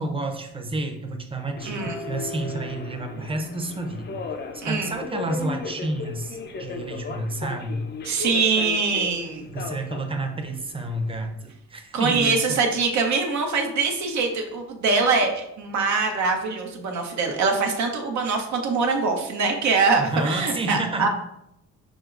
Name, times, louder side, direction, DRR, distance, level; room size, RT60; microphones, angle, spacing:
voice 1, 0.0-4.2 4.7-7.9 9.5-12.6 20.0-21.1, right 2 dB, 20° right, 4 dB, 0.7 m, -30 dB
Subway metro underground, 1.6-11.3, left 4 dB, 35° left, 0.5 m, -36 dB
voice 2, 1.6-2.0 4.6-4.9 8.0-9.5 11.9-21.1, right 4 dB, 70° right, 2 dB, 0.8 m, -23 dB
6.2 x 3.0 x 2.5 m, 0.81 s
cardioid pair, 90°, 30 cm